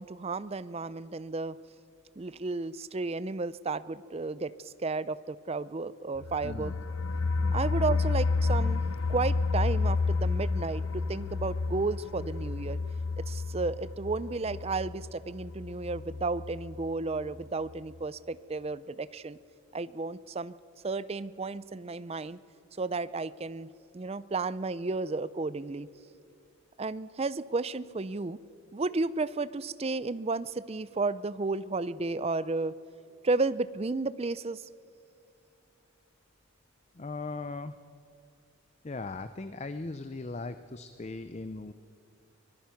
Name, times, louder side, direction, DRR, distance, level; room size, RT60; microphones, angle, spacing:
voice 1, 0.0-1.6 2.2-6.7 7.5-8.8 9.1-12.8 13.3-19.4 19.7-20.5 20.8-22.4 22.8-23.7 23.9-25.9 26.8-28.4 28.7-32.7 33.2-34.7, right 3 dB, 25° right, 16 dB, 0.4 m, -33 dB
sound 1, 6.2-16.9 17.2-17.3 17.6-17.7, left 3 dB, 75° left, 0.8 m, -30 dB
voice 2, 6.4-6.7 7.4-7.6 37.0-37.7 38.8-41.7, left 3 dB, 30° left, 11 dB, 0.5 m, -38 dB
24.0 x 19.5 x 5.9 m, 2.6 s
head